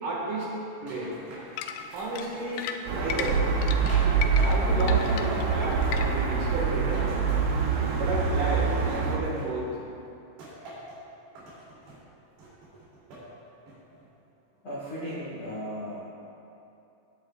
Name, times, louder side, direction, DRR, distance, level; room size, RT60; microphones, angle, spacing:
voice 1, 0.0-0.5 0.8-1.1 1.9-3.4 4.4-7.1 7.9-9.7, right 2 dB, 55° right, -5 dB, 2.7 m, -32 dB
sound 1, 0.9-4.8 5.0-7.8 8.2-9.8 10.4-11.0 11.4-12.0 12.4-13.3 13.7-14.1, right 1 dB, 70° right, 5.1 m, -44 dB
sound 2, 1.6-6.4, left 8 dB, 85° left, 2.6 m, -36 dB
sound 3, 2.9-9.2, right 5 dB, 90° right, 1.8 m, -25 dB
voice 2, 14.6-16.1, equal, 60° left, -7 dB, 1.4 m, -36 dB
17.5 x 9.6 x 2.4 m, 2.7 s
omnidirectional pair, 5.2 m